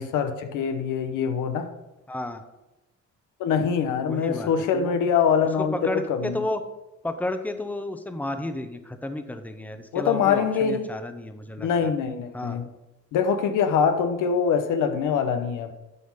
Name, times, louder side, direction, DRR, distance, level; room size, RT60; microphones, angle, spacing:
voice 1, 0.0-1.7 3.4-6.4 9.9-10.9 11.6-12.6 13.1-15.7, left 6 dB, 90° left, 8 dB, 0.9 m, -24 dB
voice 2, 2.1-2.4 4.1-4.9 5.6-6.6 7.0-11.9 12.3-12.6, left 1 dB, 5° left, 8 dB, 0.8 m, -32 dB
9.7 x 4.9 x 5.5 m, 0.98 s
cardioid pair, 90°, 30 cm